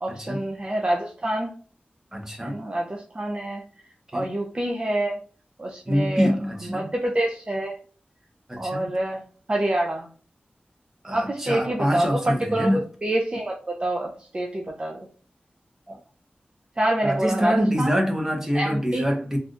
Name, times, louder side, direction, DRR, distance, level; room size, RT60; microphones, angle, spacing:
voice 1, 0.0-1.6 2.4-3.6 4.1-5.2 5.6-6.3 6.6-7.8 8.5-9.2 9.5-10.1 11.1-15.1 16.8-17.9 18.5-19.1, right 1 dB, 30° right, 0 dB, 0.5 m, -27 dB
voice 2, 2.1-2.6 4.1-4.3 5.9-6.9 8.5-8.9 11.0-12.8 15.9-16.0 17.0-19.4, equal, 15° right, 1 dB, 0.9 m, -25 dB
3.3 x 2.5 x 2.5 m, 0.42 s
wide cardioid pair, 80°, 3 cm